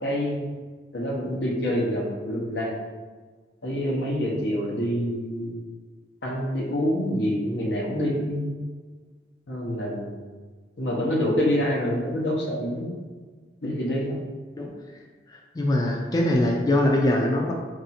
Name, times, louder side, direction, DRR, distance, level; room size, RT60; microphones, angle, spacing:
voice 1, 0.0-0.5 0.9-2.8 3.6-5.5 6.2-8.5 9.5-10.1 10.8-12.9 13.6-14.2, equal, 80° left, -2 dB, 1.0 m, -26 dB
voice 2, 15.3-17.5, left 1 dB, 20° left, 0 dB, 0.4 m, -23 dB
4.7 x 2.6 x 4.2 m, 1.4 s
head